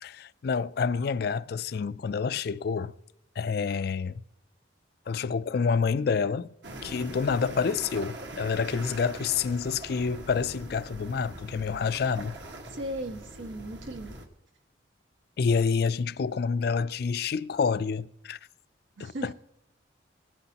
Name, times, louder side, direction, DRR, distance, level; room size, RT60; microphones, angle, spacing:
voice 1, 0.0-2.9 3.4-4.2 5.1-6.5 6.8-12.3 15.4-18.4 19.0-19.3, left 5 dB, 55° left, 0.3 m, -28 dB
sound 1, 6.6-14.3, right 1 dB, 65° right, 1.6 m, -42 dB
voice 2, 12.7-14.2 19.0-19.3, right 1 dB, 85° right, 1.6 m, -37 dB
18.5 x 12.0 x 2.9 m
head